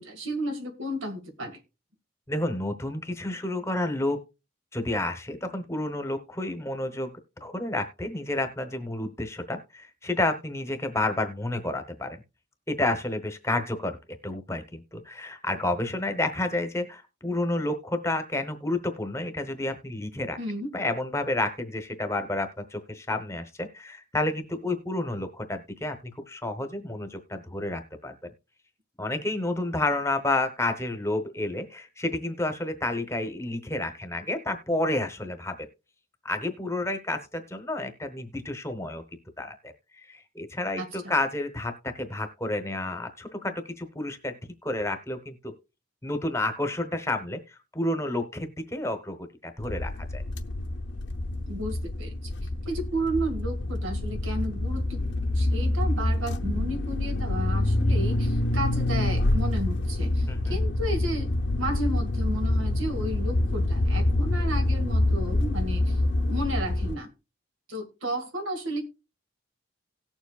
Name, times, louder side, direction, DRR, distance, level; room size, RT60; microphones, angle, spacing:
voice 1, 0.0-1.6 20.4-20.7 40.8-41.1 51.5-52.1 52.7-55.0 55.3-61.3 61.6-66.0 66.3-67.1 67.7-68.8, right 1 dB, 85° right, 6 dB, 2.0 m, -33 dB
voice 2, 2.3-4.2 4.7-7.1 7.4-12.2 12.7-14.0 14.2-20.4 20.7-28.3 29.0-35.7 36.2-39.0 39.4-39.7 40.1-44.4 44.6-45.5 46.0-49.2 49.4-50.2 60.3-60.6, left 2 dB, 15° left, 8 dB, 1.0 m, -30 dB
sound 1, 49.6-67.0, left 1 dB, 60° left, 0.7 m, -26 dB
17.5 x 7.1 x 2.4 m, 0.28 s
head